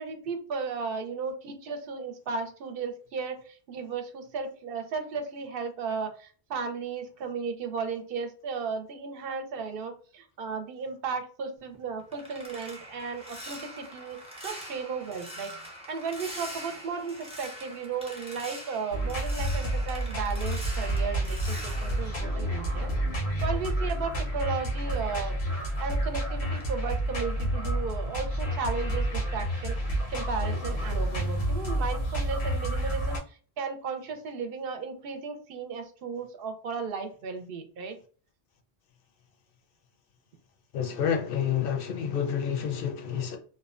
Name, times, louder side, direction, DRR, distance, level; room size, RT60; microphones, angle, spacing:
voice 1, 0.0-15.5 15.9-22.9 23.4-38.0, right 5 dB, 65° right, 0.7 m, -35 dB
sound 1, 11.6-23.2 23.6-26.2 26.6-26.9 27.3-27.5, equal, 10° right, 0.4 m, -44 dB
sound 2, 18.9-33.2, right 1 dB, 90° left, 1.0 m, -29 dB
voice 2, 40.7-43.4, left 8 dB, 65° left, 0.7 m, -29 dB
2.6 x 2.1 x 2.3 m
omnidirectional pair, 1.1 m